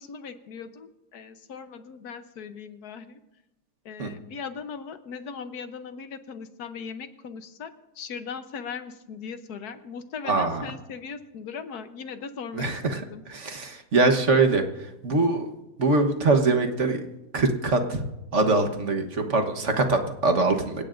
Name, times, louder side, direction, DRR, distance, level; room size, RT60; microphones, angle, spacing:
voice 1, 0.0-3.2 3.8-12.7 12.9-13.2, left 6 dB, 70° left, 9 dB, 1.4 m, -39 dB
voice 2, 10.2-10.6 12.5-13.0 13.3-15.5 15.8-17.0 17.3-18.0 18.3-20.8, right 3 dB, 50° right, 5 dB, 1.5 m, -23 dB
26.5 x 16.5 x 2.6 m, 0.97 s
omnidirectional pair, 1.7 m